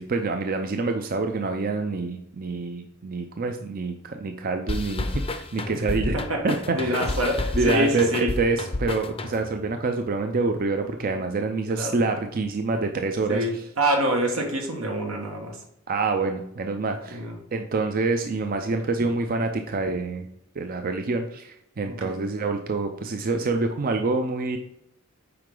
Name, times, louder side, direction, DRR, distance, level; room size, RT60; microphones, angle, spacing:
voice 1, 0.0-6.1 6.4-7.0 7.5-13.6 15.9-17.2 17.5-20.3 20.6-24.6, right 3 dB, 45° right, 5 dB, 0.5 m, -26 dB
sound 1, 4.7-9.6, left 2 dB, 25° left, 0.5 m, -30 dB
voice 2, 6.1-6.4 6.7-8.3 11.8-12.0 13.3-15.6 17.1-17.4 19.0-19.2 21.8-22.1, right 1 dB, 85° right, 2 dB, 1.5 m, -26 dB
7.7 x 4.9 x 3.8 m, 0.78 s
head